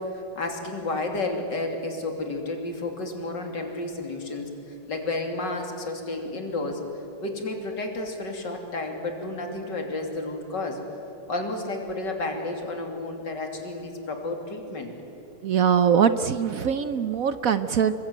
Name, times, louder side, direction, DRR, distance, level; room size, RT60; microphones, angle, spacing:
voice 1, 0.0-6.8 7.2-10.8 11.3-14.9, left 2 dB, 55° left, 3 dB, 3.5 m, -31 dB
voice 2, 15.4-17.9, right 7 dB, 60° right, 11 dB, 0.9 m, -22 dB
28.0 x 22.5 x 9.4 m, 2.8 s
omnidirectional pair, 2.3 m